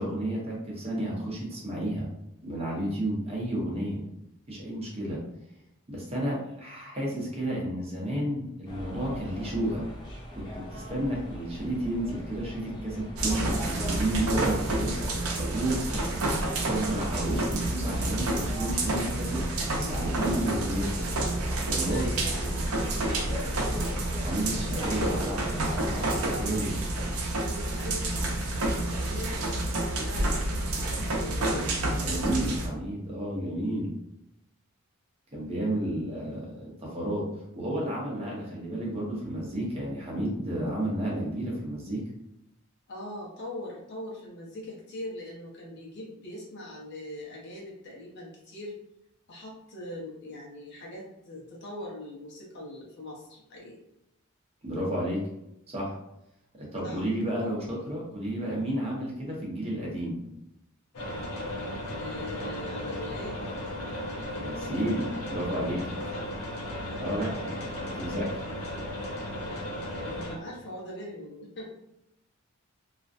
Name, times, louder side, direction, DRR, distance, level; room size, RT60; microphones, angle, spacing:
voice 1, 0.0-2.1 2.4-4.0 4.5-5.2 5.9-9.8 10.3-16.3 16.7-19.5 19.9-21.1 21.7-22.1 24.1-25.4 25.6-26.7 32.0-33.9 35.3-37.2 37.5-42.0 54.6-55.3 55.7-56.0 56.5-60.2 64.3-65.8 67.0-67.6 67.8-68.4, right 1 dB, 30° right, -3 dB, 0.7 m, -32 dB
sound 1, 8.7-26.2, equal, 20° left, 0.5 m, -42 dB
sound 2, 13.2-32.7, right 2 dB, 80° right, 0.5 m, -29 dB
voice 2, 16.0-16.4 20.6-21.5 21.9-22.6 23.0-23.9 24.5-25.2 26.3-26.7 27.3-30.4 31.2-31.7 42.9-48.8 49.3-53.8 56.8-57.0 61.9-63.4 66.1-66.2 66.8-67.5 69.4-71.7, left 1 dB, 55° left, -3 dB, 0.7 m, -41 dB
sound 3, 60.9-70.3, left 1 dB, 85° left, 0.7 m, -35 dB
2.4 x 2.1 x 2.5 m, 0.84 s
head